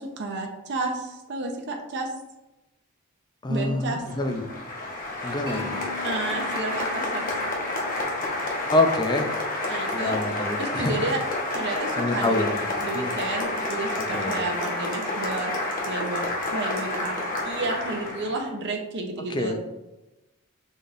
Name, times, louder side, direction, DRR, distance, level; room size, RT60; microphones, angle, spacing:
voice 1, 0.0-2.1 3.5-4.0 6.0-7.2 9.7-11.2 11.5-12.4 12.8-15.6 15.8-16.2 16.5-19.6, right 2 dB, 55° right, 2 dB, 0.7 m, -31 dB
voice 2, 3.4-4.4 5.2-5.8 8.7-9.3 9.9-10.9 12.0-12.5 12.9-13.1 14.0-14.4 19.3-19.6, left 2 dB, 20° left, 5 dB, 0.5 m, -26 dB
Applause, 4.0-18.5, left 2 dB, 40° left, 1.0 m, -29 dB
Mallet percussion, 5.5-9.5, left 6 dB, 25° right, 1.3 m, -44 dB
5.1 x 4.1 x 2.5 m, 0.99 s
head